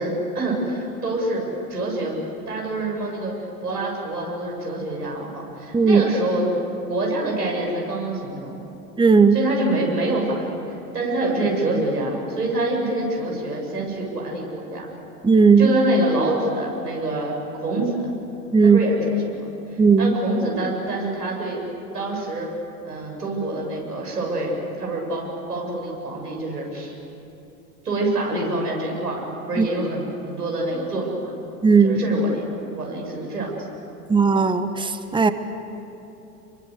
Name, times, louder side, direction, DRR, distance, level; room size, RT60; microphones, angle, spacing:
voice 1, 0.0-2.2 2.5-3.3 3.6-6.5 6.9-8.7 9.3-14.9 15.6-18.1 18.6-19.5 20.0-21.6 21.9-22.5 22.8-24.5 24.8-26.9 27.8-31.3 31.8-32.5 32.7-33.6, right 2 dB, 85° right, -1 dB, 7.6 m, -26 dB
voice 2, 9.0-9.4 15.2-15.7 18.5-18.8 19.8-20.1 29.6-29.7 31.6-32.0 34.1-35.3, right 5 dB, 10° right, 10 dB, 1.4 m, -16 dB
28.5 x 23.0 x 8.2 m, 2.9 s
figure-of-eight pair, 85°, 46 cm